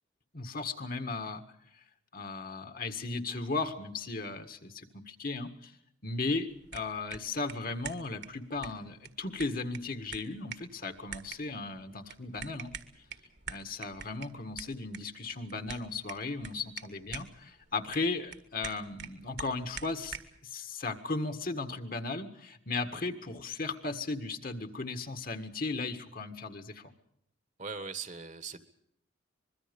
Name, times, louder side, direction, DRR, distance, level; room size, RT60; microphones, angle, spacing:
voice 1, 0.3-1.4 2.1-5.7 6.0-12.7 13.5-20.2 20.4-26.9, left 3 dB, 45° left, 7 dB, 1.8 m, -36 dB
sound 1, 6.5-20.4, right 7 dB, 55° right, 1.8 m, -47 dB
voice 2, 27.6-28.6, right 5 dB, 40° right, 11 dB, 1.5 m, -40 dB
25.0 x 22.5 x 5.4 m, 0.74 s
head